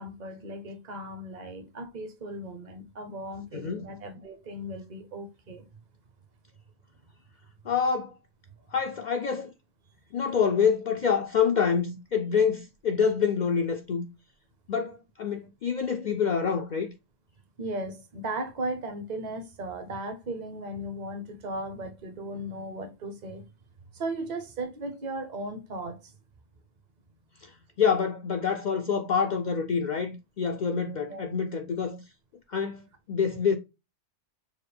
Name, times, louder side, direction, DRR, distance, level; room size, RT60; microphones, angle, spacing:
voice 1, 0.0-5.7 17.6-23.4 23.9-26.1 31.1-31.2, right 1 dB, 45° right, 0.7 m, -36 dB
voice 2, 3.5-3.9 7.7-8.2 8.7-9.5 10.1-14.1 14.7-16.9 27.4-32.0 32.5-32.8 33.1-33.6, left 6 dB, 75° left, 0.4 m, -27 dB
6.3 x 2.1 x 3.3 m
omnidirectional pair, 1.3 m